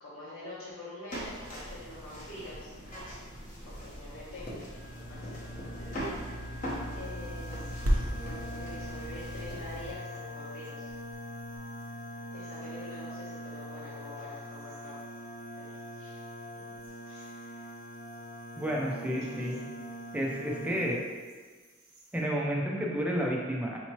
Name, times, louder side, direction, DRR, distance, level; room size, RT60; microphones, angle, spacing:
voice 1, 0.0-2.7 3.6-6.2 6.9-10.9 12.3-14.9 15.5-16.2 17.1-17.6 18.7-19.6, left 1 dB, 85° left, -10 dB, 1.0 m, -46 dB
sound 1, 1.1-9.9, equal, 40° left, 0.8 m, -41 dB
sound 2, 4.7-20.9, left 1 dB, 60° left, 0.4 m, -43 dB
sound 3, 7.0-22.2, equal, 75° right, 0.7 m, -41 dB
voice 2, 18.6-19.6 20.1-21.0 22.1-23.8, equal, 5° right, -2 dB, 0.4 m, -31 dB
4.4 x 2.9 x 2.9 m, 1.5 s
head